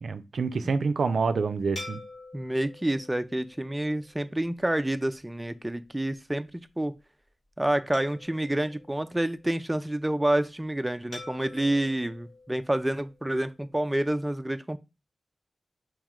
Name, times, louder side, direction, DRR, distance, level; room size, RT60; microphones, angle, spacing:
voice 1, 0.0-2.0, right 4 dB, 80° right, 0.4 m, -27 dB
sound 1, 1.8-4.4 5.0-5.2 7.9-9.7 11.1-13.4, left 2 dB, 80° left, 2.7 m, -47 dB
voice 2, 2.3-6.5 6.8-6.9 7.6-14.8, right 1 dB, 15° right, 0.4 m, -28 dB
4.8 x 3.0 x 3.6 m
wide cardioid pair, 75°, 0 cm